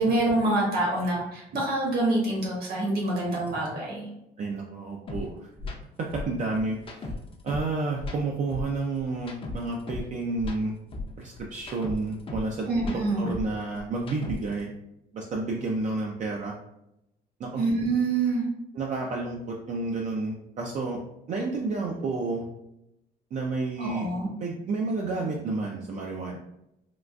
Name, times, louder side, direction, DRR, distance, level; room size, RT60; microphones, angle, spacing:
voice 1, 0.0-4.1 12.7-13.3 17.5-18.4 23.8-24.3, right 2 dB, 65° right, -3 dB, 1.4 m, -26 dB
voice 2, 4.4-5.5 6.0-7.1 7.4-10.7 11.2-14.7 15.1-16.6 17.4-17.6 18.7-21.0 21.3-22.5 23.3-24.1 24.4-26.4, right 3 dB, 45° right, -1 dB, 0.4 m, -30 dB
sound 1, 5.1-5.2 5.6-5.8 6.1-7.7 8.0-10.1 10.4-12.5 12.8-14.6, left 3 dB, 30° left, 0.5 m, -37 dB
3.7 x 2.4 x 2.3 m, 0.85 s
cardioid pair, 110°, 17 cm